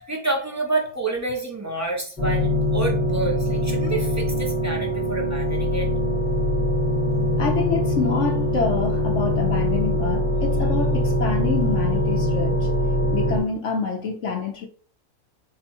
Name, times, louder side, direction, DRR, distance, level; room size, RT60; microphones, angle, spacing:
voice 1, 0.0-5.9, right 2 dB, 20° right, 0.4 m, -28 dB
sound 1, 2.2-13.4, left 1 dB, 25° left, 1.1 m, -22 dB
voice 2, 7.4-12.7 13.1-14.7, left 5 dB, 60° left, 0.8 m, -27 dB
5.2 x 2.0 x 4.4 m
omnidirectional pair, 1.7 m